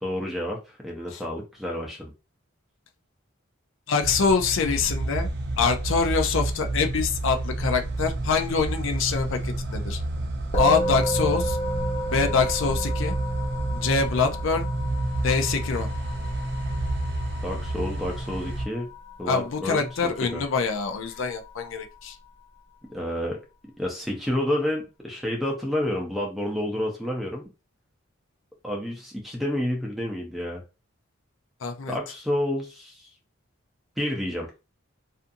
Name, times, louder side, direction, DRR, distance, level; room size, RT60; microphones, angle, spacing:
voice 1, 0.0-2.1 17.4-18.9 19.2-20.4 22.9-23.4 23.8-27.5 28.6-30.6 31.9-33.0 34.0-34.5, left 1 dB, ahead, 0.6 m, -29 dB
voice 2, 3.9-5.3 5.6-10.0 10.6-11.6 12.1-13.2 13.7-14.7 15.2-15.9 19.3-22.2 31.6-32.0, left 5 dB, 65° left, 0.4 m, -25 dB
sound 1, 4.0-18.7, right 2 dB, 50° right, 0.5 m, -29 dB
Musical instrument, 10.5-20.1, equal, 35° left, 1.0 m, -32 dB
2.5 x 2.5 x 2.6 m
head